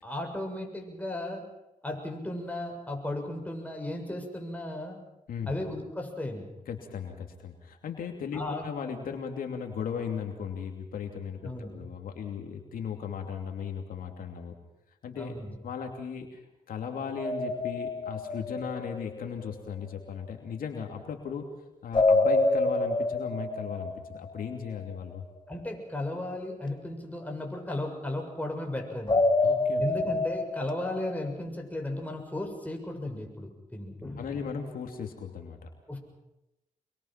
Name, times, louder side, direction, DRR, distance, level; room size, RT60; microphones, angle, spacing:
voice 1, 0.0-1.4 1.8-5.0 5.5-6.5 8.3-8.7 11.4-11.8 15.2-15.5 25.5-29.2 29.8-34.2 35.9-36.0, left 1 dB, 10° left, 2 dB, 7.0 m, -35 dB
voice 2, 6.7-14.6 15.0-15.3 15.6-21.5 21.8-25.2 29.4-29.8 34.1-35.7, left 7 dB, 85° left, 4 dB, 2.8 m, -37 dB
sound 1, 17.2-19.3 21.9-24.8 29.1-31.3, left 2 dB, 35° left, 2.6 m, -27 dB
26.0 x 22.5 x 5.9 m, 0.89 s
cardioid pair, 65°, 14 cm